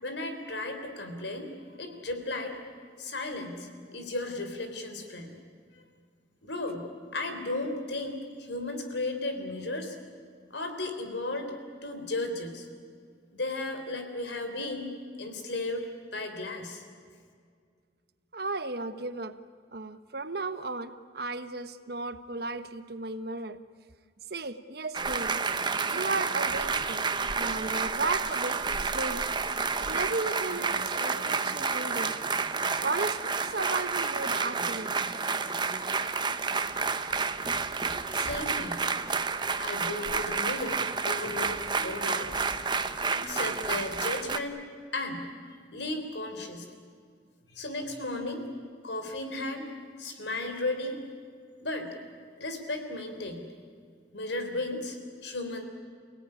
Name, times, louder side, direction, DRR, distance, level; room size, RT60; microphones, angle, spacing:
voice 1, 0.0-2.6 3.0-5.4 5.7-5.8 6.4-10.0 10.5-11.5 11.8-12.7 13.3-14.9 15.2-16.8 38.1-38.8 39.6-42.5 43.1-44.6 44.9-45.3 45.7-46.7 47.5-48.4 48.8-49.7 50.0-51.0 51.6-51.9 52.4-53.5 54.1-55.7, left 2 dB, 70° left, 6 dB, 3.7 m, -35 dB
voice 2, 18.3-19.3 19.7-23.6 24.3-25.4 25.9-27.1 27.4-29.3 29.8-32.1 32.8-35.0, right 3 dB, 55° right, 11 dB, 1.2 m, -35 dB
sound 1, 24.9-44.4, right 4 dB, 25° right, 0.9 m, -30 dB
29.5 x 17.5 x 9.9 m, 2.1 s
head